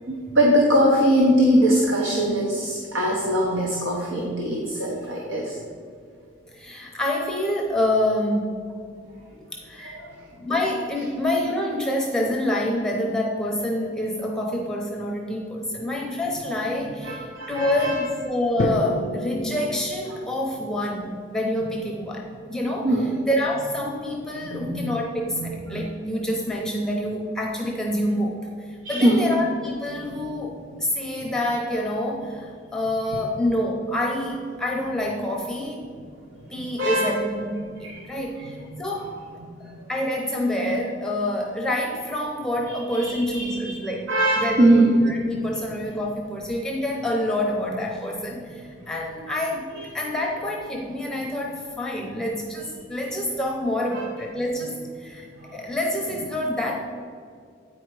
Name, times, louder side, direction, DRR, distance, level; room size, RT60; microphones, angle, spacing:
voice 1, 0.1-5.5 9.8-10.1 17.0-18.0 22.8-23.1 24.4-24.8 25.3-25.6 28.8-29.2 36.8-37.1 37.8-38.0 43.0-43.5 44.1-44.9 49.8-49.9 53.9-54.0 55.4-55.6, right 1 dB, 85° right, -1 dB, 1.0 m, -21 dB
voice 2, 6.5-8.7 9.5-10.0 10.4-35.8 36.5-39.2 39.6-49.7 49.9-56.8, left 1 dB, 5° left, 0 dB, 0.7 m, -27 dB
Drum, 18.6-20.7, left 1 dB, 45° left, 0.4 m, -30 dB
8.8 x 4.9 x 4.7 m, 2.3 s
head